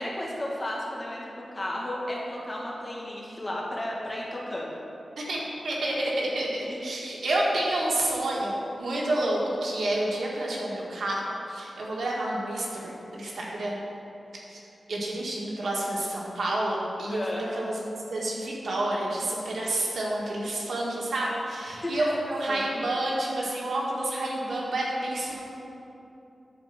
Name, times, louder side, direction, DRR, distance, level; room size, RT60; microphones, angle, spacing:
voice 1, 0.0-4.8 6.7-6.8 17.1-17.4 21.7-22.1 22.5-22.7, left 1 dB, 25° left, -4 dB, 2.0 m, -33 dB
voice 2, 5.2-11.2 11.5-13.8 14.5-14.6 14.9-25.4, right 1 dB, 80° right, -4 dB, 1.9 m, -29 dB
10.5 x 4.4 x 7.4 m, 2.9 s
wide cardioid pair, 85°, 0 cm